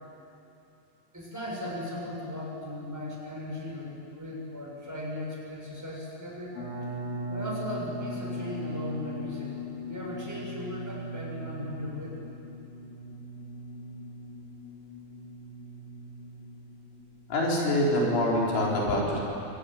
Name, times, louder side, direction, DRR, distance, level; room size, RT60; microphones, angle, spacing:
voice 1, 1.1-6.6 7.3-9.5 9.8-12.2, left 1 dB, 5° right, -4 dB, 5.9 m, -37 dB
sound 1, 6.5-17.5, equal, 35° left, 4.9 m, -39 dB
voice 2, 17.3-19.3, left 1 dB, 70° left, -3 dB, 6.2 m, -25 dB
25.0 x 18.5 x 10.0 m, 2.7 s
omnidirectional pair, 5.8 m